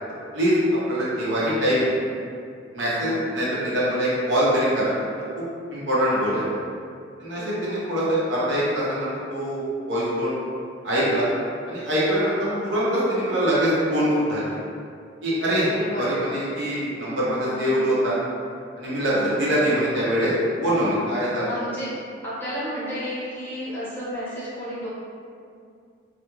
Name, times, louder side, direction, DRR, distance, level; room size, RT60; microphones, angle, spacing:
voice 1, 0.9-1.8 2.7-5.4 5.7-6.4 7.2-10.3 10.8-11.3 11.7-12.4 12.6-14.4 15.2-15.7 16.0-18.2 18.8-19.1 19.4-20.3 20.6-21.5, equal, 70° right, -8 dB, 0.7 m, -23 dB
voice 2, 2.9-3.3 7.4-7.9 12.4-12.9 15.7-16.2 17.4-17.7 19.1-19.5 21.4-21.9 22.2-24.9, equal, 10° left, -11 dB, 0.7 m, -33 dB
2.3 x 2.1 x 3.0 m, 2.3 s
head